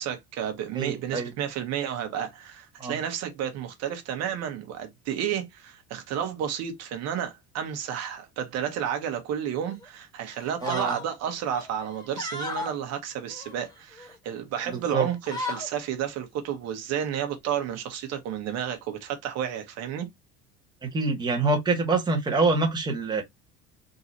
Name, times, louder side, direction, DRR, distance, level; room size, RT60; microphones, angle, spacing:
voice 1, 0.0-20.1, right 9 dB, 60° right, 1.2 m, -31 dB
voice 2, 0.7-1.3 2.8-2.9 10.6-10.9 14.7-15.0 20.9-23.2, right 3 dB, 15° right, 1.2 m, -25 dB
sound 1, 9.6-9.9 10.3-11.1 11.5-12.8 13.3-14.2 14.6-14.8 15.1-15.7, left 2 dB, 15° left, 1.4 m, -36 dB
3.9 x 2.8 x 3.9 m
cardioid pair, 150°, 30 cm